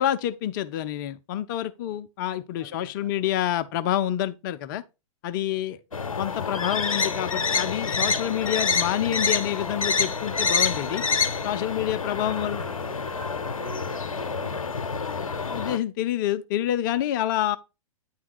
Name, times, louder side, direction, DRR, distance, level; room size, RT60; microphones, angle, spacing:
voice 1, 0.0-4.8 5.2-5.8 6.2-11.0 11.4-12.6 15.5-17.6, left 12 dB, 35° left, 0.5 m, -27 dB
voice 2, 2.6-3.8 5.5-5.8 11.9-14.8, right 7 dB, 60° right, 3.7 m, -48 dB
sound 1, 5.9-15.8, left 5 dB, 70° left, 0.7 m, -27 dB
9.6 x 3.4 x 4.9 m
figure-of-eight pair, 105°, 18 cm